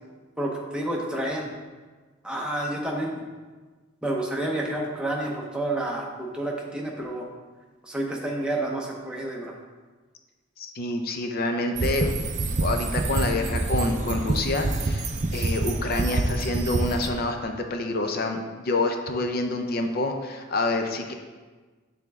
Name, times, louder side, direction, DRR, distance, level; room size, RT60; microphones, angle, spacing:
voice 1, 0.4-1.5 2.2-3.2 4.0-7.3 7.8-9.6, right 1 dB, 5° right, -2 dB, 0.7 m, -29 dB
voice 2, 10.6-12.2 12.6-21.1, left 2 dB, 45° left, 5 dB, 0.4 m, -27 dB
sound 1, 11.8-17.1, right 2 dB, 35° right, 0.4 m, -27 dB
8.0 x 3.4 x 3.5 m, 1.4 s
head